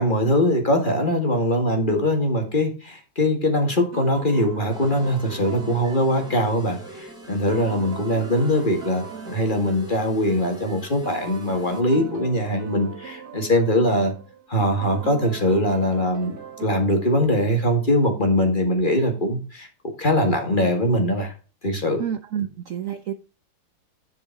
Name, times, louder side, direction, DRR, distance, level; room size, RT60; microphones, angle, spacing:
voice 1, 0.0-14.1 14.5-19.7 20.0-21.3 21.6-22.0, equal, 25° left, 3 dB, 1.9 m, -22 dB
sound 1, 3.9-18.1, right 6 dB, 50° right, 1.9 m, -40 dB
sound 2, 4.7-11.8, equal, ahead, 2.7 m, -43 dB
voice 2, 22.0-23.1, right 9 dB, 80° right, 9 dB, 0.7 m, -29 dB
11.0 x 5.2 x 4.0 m, 0.36 s
omnidirectional pair, 2.2 m